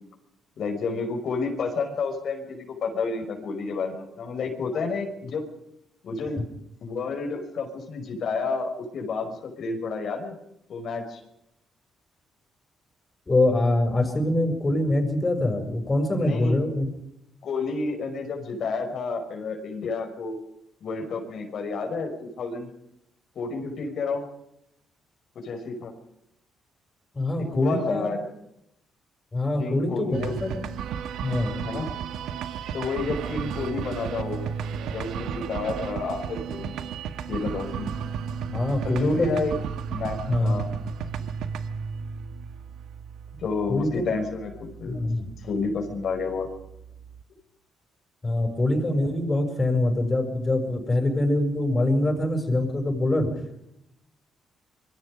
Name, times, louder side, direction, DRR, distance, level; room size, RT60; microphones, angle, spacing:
voice 1, 0.6-5.5 6.0-6.4 6.8-10.3 10.7-11.2 16.2-16.6 17.4-20.4 20.8-22.7 23.4-24.3 25.4-25.9 27.5-28.3 29.6-30.4 31.6-31.9 32.7-34.4 34.9-36.8 37.3-37.9 38.8-39.5 39.9-40.7 41.2-41.3 43.4-45.1 45.4-46.5, left 4 dB, 60° left, 2 dB, 5.5 m, -30 dB
voice 2, 13.3-16.9 27.1-28.1 29.3-30.6 31.2-31.7 38.5-39.4 40.3-40.7 43.7-44.0 44.8-45.3 48.2-53.4, left 1 dB, 25° left, 5 dB, 6.7 m, -24 dB
sound 1, 30.1-47.2, right 7 dB, 80° right, 1.7 m, -34 dB
27.0 x 22.0 x 5.3 m, 0.80 s
cardioid pair, 90°, 0 cm